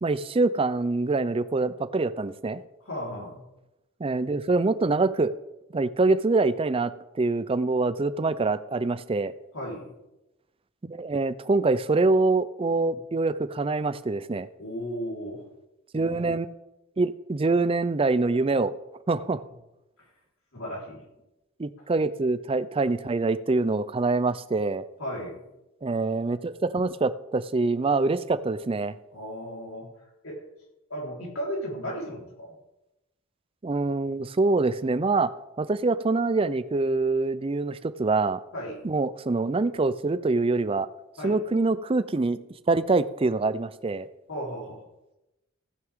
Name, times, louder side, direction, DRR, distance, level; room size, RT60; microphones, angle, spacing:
voice 1, 0.0-2.6 4.0-5.3 5.7-9.3 10.8-14.5 15.9-16.5 17.0-18.7 19.1-19.4 21.6-24.8 25.8-28.9 33.6-35.3 35.6-38.4 38.8-40.9 41.2-44.1, right 3 dB, 25° right, 15 dB, 0.4 m, -25 dB
voice 2, 2.8-3.4 9.5-9.9 12.7-13.0 14.6-15.4 20.5-21.0 21.8-21.9 25.0-25.4 29.1-29.9 30.2-30.4 30.9-32.5 38.5-38.8 41.2-41.4 44.3-44.8, equal, 85° left, -3 dB, 4.2 m, -35 dB
15.5 x 9.4 x 3.6 m, 0.95 s
head